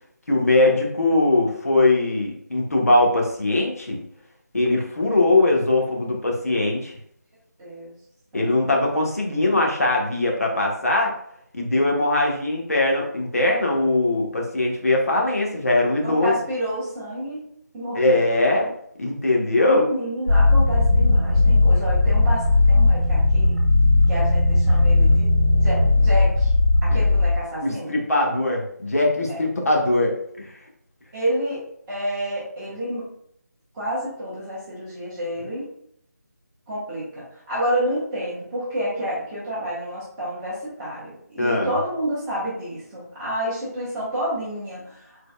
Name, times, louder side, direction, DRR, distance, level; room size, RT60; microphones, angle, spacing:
voice 1, 0.3-4.0 4.5-6.9 8.3-11.1 11.5-16.3 17.9-18.7 19.0-19.8 27.6-30.5 41.4-41.7, left 2 dB, 55° left, -1 dB, 1.1 m, -21 dB
voice 2, 7.6-7.9 8.3-8.5 16.0-17.5 17.7-18.2 19.6-23.6 24.1-25.3 25.6-26.5 26.8-27.9 29.3-29.4 31.1-33.1 33.7-35.7 36.7-45.3, equal, 10° right, -10 dB, 1.2 m, -29 dB
sound 1, 20.3-27.4, left 2 dB, 45° right, 1.5 m, -17 dB
5.1 x 4.0 x 2.3 m, 0.69 s
figure-of-eight pair, 160°, 10 cm